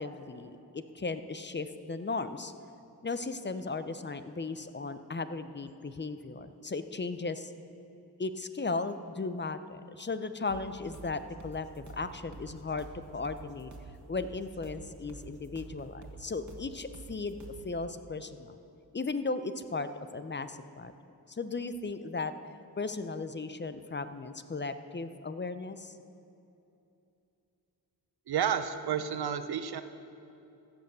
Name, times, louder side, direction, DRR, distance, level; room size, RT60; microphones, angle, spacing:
voice 1, 0.0-2.5 3.0-7.5 8.2-12.9 13.1-13.7 14.1-17.4 17.6-18.6 18.9-20.9 21.3-22.3 22.8-25.9, left 3 dB, 30° left, 11 dB, 0.6 m, -36 dB
sound 1, 10.5-17.7, right 3 dB, 50° right, 1.6 m, -48 dB
voice 2, 28.3-29.8, right 8 dB, 75° right, 10 dB, 0.7 m, -31 dB
15.0 x 6.6 x 6.8 m, 2.8 s
cardioid pair, 55°, 38 cm